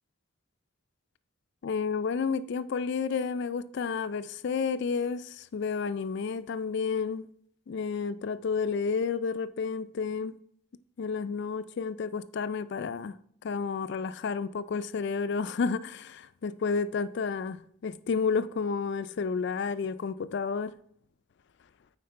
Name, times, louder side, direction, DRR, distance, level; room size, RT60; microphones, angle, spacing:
voice 1, 1.6-7.3 7.7-10.4 11.0-13.2 13.4-20.8, left 5 dB, 55° left, 0.3 m, -31 dB
8.5 x 4.7 x 4.4 m
head